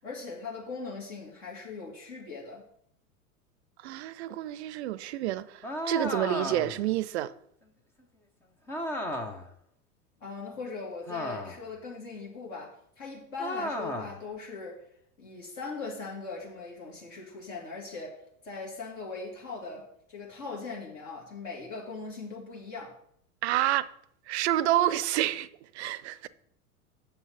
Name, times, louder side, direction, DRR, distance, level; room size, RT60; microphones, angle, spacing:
voice 1, 0.0-2.7 10.2-14.8 15.2-23.0, left 4 dB, 55° left, 2.2 m, -40 dB
voice 2, 3.8-7.3 23.4-23.9 24.3-25.5 25.7-26.3, right 13 dB, 50° right, 0.5 m, -28 dB
sound 1, 5.6-6.9 8.7-9.5 11.1-11.7 13.4-14.2, left 1 dB, 5° left, 0.3 m, -34 dB
7.2 x 5.6 x 5.6 m
figure-of-eight pair, 90°, 44 cm